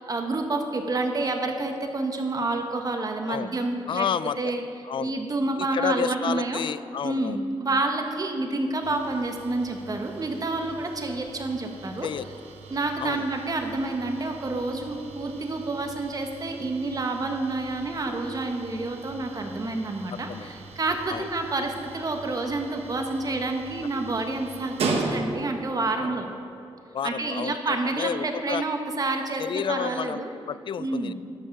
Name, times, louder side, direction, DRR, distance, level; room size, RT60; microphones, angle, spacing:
voice 1, 0.0-4.1 4.4-4.6 5.0-6.6 7.0-12.1 12.7-26.3 27.0-30.3 30.8-31.1, right 2 dB, 35° right, 4 dB, 1.3 m, -29 dB
voice 2, 3.9-4.5 4.8-5.1 5.6-7.4 12.0-12.3 13.0-13.3 20.1-20.5 21.1-21.3 26.0-26.2 26.9-28.6 29.4-30.2 30.5-31.1, left 8 dB, 55° left, 16 dB, 0.3 m, -30 dB
sound 1, 8.8-25.7, right 3 dB, 80° right, 1.2 m, -38 dB
11.5 x 5.6 x 7.1 m, 2.8 s
cardioid pair, 85°, 10 cm